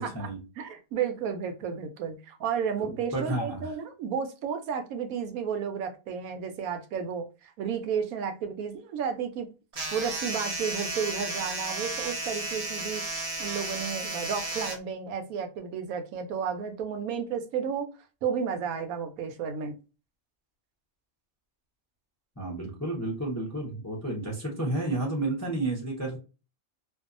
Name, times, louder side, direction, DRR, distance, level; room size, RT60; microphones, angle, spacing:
voice 1, 0.0-0.4 2.8-3.7 22.4-26.2, right 2 dB, 20° left, -2 dB, 0.4 m, -31 dB
voice 2, 0.6-9.5 9.9-13.0 13.4-17.9 18.2-19.8, right 7 dB, 75° right, 7 dB, 1.0 m, -32 dB
sound 1, 9.7-14.8, right 2 dB, 50° right, 0.4 m, -33 dB
2.6 x 2.2 x 2.4 m, 0.31 s
omnidirectional pair, 1.5 m